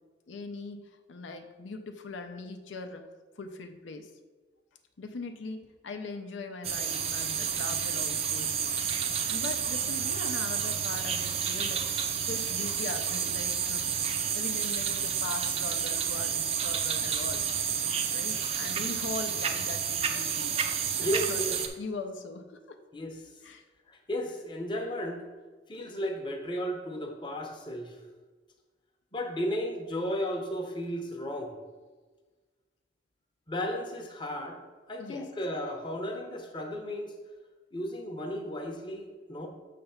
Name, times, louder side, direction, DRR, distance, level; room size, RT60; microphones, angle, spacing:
voice 1, 0.3-0.8 1.1-3.0 3.4-4.1 5.0-8.8 9.3-11.8 12.3-13.9 14.3-17.4 18.1-20.8 21.1-21.4 21.8-22.8 23.4-23.6 35.0-35.3, left 3 dB, 80° left, 6 dB, 0.5 m, -40 dB
sound 1, 6.6-21.7, right 7 dB, 30° right, 0.4 m, -30 dB
voice 2, 21.0-21.6 22.9-23.2 23.9-25.2 25.7-28.0 29.1-31.5 33.5-34.6 34.9-37.2 37.7-39.5, equal, 25° left, 2 dB, 0.7 m, -34 dB
6.7 x 3.3 x 5.6 m, 1.3 s
head